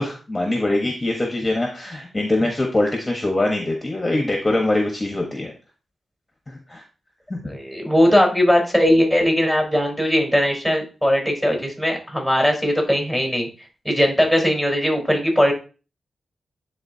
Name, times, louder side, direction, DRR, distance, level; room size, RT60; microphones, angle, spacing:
voice 1, 0.0-5.5 6.5-6.8 7.3-7.5, left 2 dB, 25° left, 1 dB, 1.2 m, -23 dB
voice 2, 7.5-13.5 13.8-15.5, equal, 5° right, 1 dB, 3.7 m, -19 dB
10.5 x 3.8 x 2.8 m, 0.34 s
cardioid pair, 75°, 0 cm